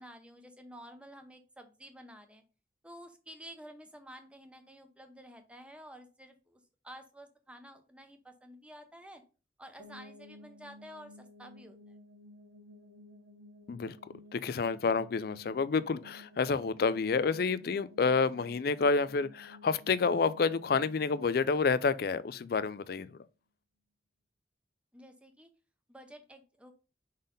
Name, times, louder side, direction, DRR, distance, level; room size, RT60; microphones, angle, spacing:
voice 1, 0.0-2.4 2.8-9.2 9.6-12.0 24.9-25.5 25.9-26.7, equal, 5° right, 0.8 m, -51 dB
sound 1, 9.8-22.7, left 1 dB, 60° right, 1.7 m, -55 dB
voice 2, 14.3-23.2, left 4 dB, 55° left, 0.4 m, -29 dB
5.2 x 4.1 x 5.3 m
head